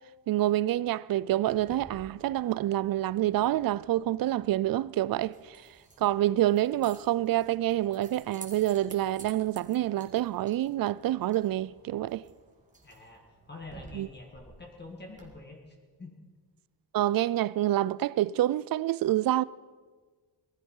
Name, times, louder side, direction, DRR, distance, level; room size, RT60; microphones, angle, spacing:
voice 1, 0.3-5.6 6.0-12.2 13.9-14.1 16.9-19.4, right 14 dB, 55° right, 0.5 m, -27 dB
Keys jangling, 1.4-15.2, right 3 dB, 15° right, 2.2 m, -54 dB
voice 2, 12.8-16.2, left 2 dB, 25° left, 2.0 m, -47 dB
19.5 x 13.5 x 5.5 m
wide cardioid pair, 155°, 43 cm